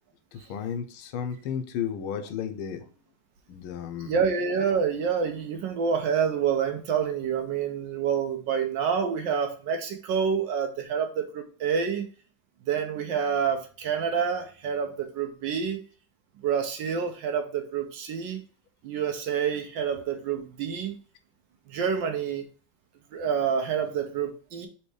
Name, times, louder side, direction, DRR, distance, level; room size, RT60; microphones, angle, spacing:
voice 1, 0.5-2.8 3.5-4.1, left 8 dB, 90° left, 1.5 m, -33 dB
voice 2, 4.0-12.1 12.7-15.8 16.4-18.4 18.8-20.9 21.7-22.5 23.1-24.7, right 7 dB, 70° right, 1.2 m, -28 dB
4.4 x 3.2 x 3.2 m
omnidirectional pair, 2.3 m